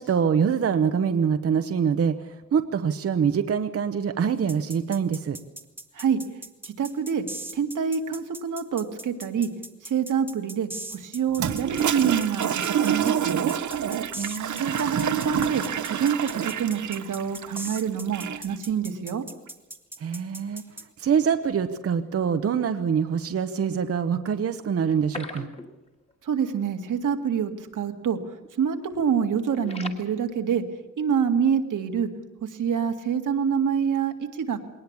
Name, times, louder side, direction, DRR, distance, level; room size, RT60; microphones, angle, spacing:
voice 1, 0.0-5.4 14.1-14.7 20.0-20.6 21.0-25.5, right 7 dB, 50° right, 9 dB, 0.9 m, -25 dB
sound 1, 4.5-20.9, right 2 dB, 5° right, 1.2 m, -39 dB
voice 2, 6.6-7.2 7.5-9.5 9.8-12.5 12.8-13.5 14.5-19.2 26.2-28.2 28.6-30.6 31.0-32.1 32.6-34.6, right 7 dB, 90° right, 5 dB, 2.0 m, -26 dB
Toilet flush, 11.3-18.6, right 8 dB, 70° right, 1.1 m, -28 dB
sound 2, 24.9-26.1 26.4-26.5 26.9-27.0 27.6-27.8 28.1-28.5 28.8-30.0, left 2 dB, 20° left, 1.9 m, -39 dB
21.5 x 19.0 x 8.5 m, 0.98 s
wide cardioid pair, 170°, 30 cm